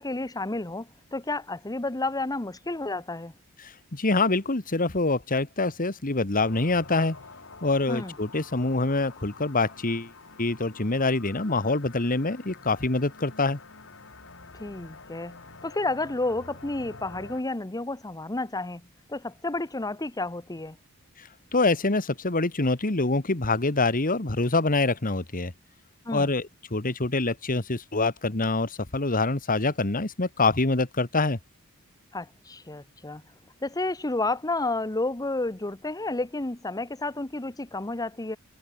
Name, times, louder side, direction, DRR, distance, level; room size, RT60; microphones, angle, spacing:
voice 1, 0.0-3.3 7.9-8.1 14.5-15.4 15.6-20.8 26.0-26.3 32.1-33.2 33.6-38.4, left 2 dB, 15° left, 1.0 m, -31 dB
voice 2, 3.6-7.2 7.6-10.1 10.4-13.6 21.2-25.5 26.1-31.4, left 3 dB, 40° left, 1.8 m, -25 dB
sound 1, 6.4-17.4, left 3 dB, 65° left, 5.5 m, -47 dB
head